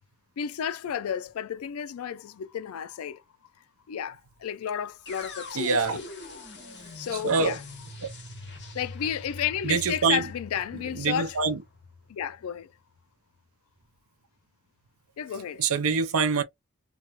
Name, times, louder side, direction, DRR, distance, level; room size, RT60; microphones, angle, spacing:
voice 1, 0.4-3.2 3.9-6.1 7.0-7.6 8.6-11.4 12.1-12.7 15.2-15.6, left 8 dB, 70° left, 0.4 m, -32 dB
sound 1, 5.1-13.0, left 3 dB, 50° left, 1.8 m, -43 dB
voice 2, 5.5-6.0 7.2-7.5 9.6-10.2 11.0-11.6 15.6-16.4, right 5 dB, 70° right, 0.7 m, -24 dB
3.3 x 2.4 x 3.0 m
head